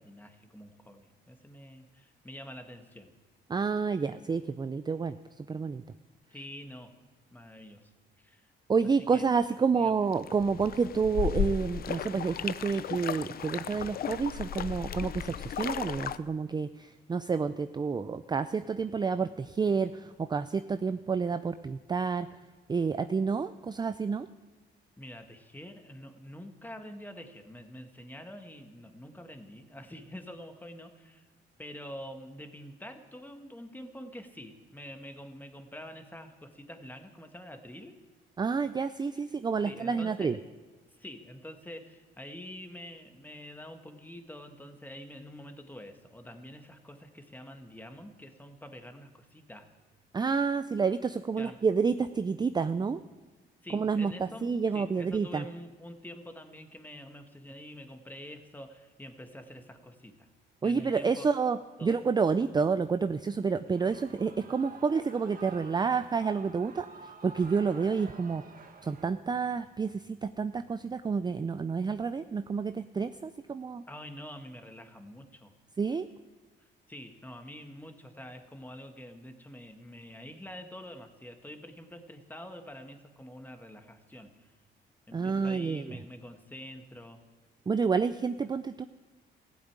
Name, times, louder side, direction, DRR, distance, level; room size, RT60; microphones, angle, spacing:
voice 1, 0.0-3.1 6.3-6.9 7.3-7.9 8.2-8.5 9.1-9.3 9.7-10.0 25.0-31.3 31.6-38.0 39.6-40.4 40.9-49.7 51.4-51.6 53.6-60.3 60.6-61.3 61.8-62.0 63.9-64.0 73.9-75.5 76.6-84.5 85.1-87.2, equal, 10° left, 6 dB, 1.6 m, -46 dB
voice 2, 3.5-5.8 8.7-22.3 22.7-24.3 38.4-40.4 50.1-53.0 53.7-55.4 60.6-68.4 68.8-73.8 75.8-76.1 85.1-86.0 87.7-88.8, right 5 dB, 20° right, 11 dB, 0.4 m, -29 dB
sound 1, 10.1-16.2, left 9 dB, 50° left, 0.5 m, -35 dB
Shout / Cheering, 63.7-69.1, right 4 dB, 45° right, 1.7 m, -50 dB
15.0 x 8.0 x 8.9 m, 1.3 s
cardioid pair, 90°, 20 cm